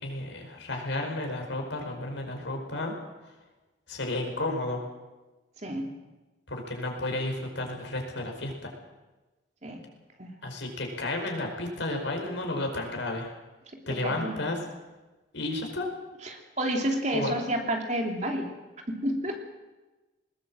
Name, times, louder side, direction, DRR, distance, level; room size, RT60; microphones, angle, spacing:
voice 1, 0.0-2.9 3.2-3.3 3.9-4.8 6.5-8.7 10.4-13.3 13.9-14.6 15.3-15.9 17.1-17.3, left 2 dB, 75° left, 3 dB, 5.1 m, -32 dB
voice 2, 5.6-6.0 9.6-9.8 10.2-10.3 13.9-14.4 16.2-18.5 18.9-19.4, right 1 dB, 40° right, 2 dB, 2.8 m, -30 dB
20.5 x 19.0 x 7.6 m, 1.2 s
head